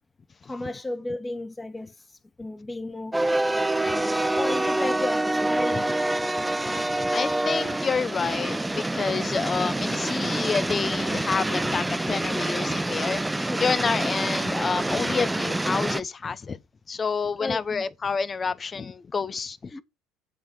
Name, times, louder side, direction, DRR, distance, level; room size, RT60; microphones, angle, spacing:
voice 1, 0.4-1.9 2.4-3.2 3.8-5.9 13.5-13.6 14.0-14.1 17.4-17.8 19.7-19.8, left 2 dB, 15° left, 1.7 m, -33 dB
sound 1, 3.1-16.0, right 1 dB, 10° right, 0.5 m, -26 dB
voice 2, 3.6-4.0 6.6-16.6 16.9-19.8, left 5 dB, 30° left, 0.9 m, -29 dB
7.9 x 7.4 x 4.4 m
supercardioid pair, 80°, 0 cm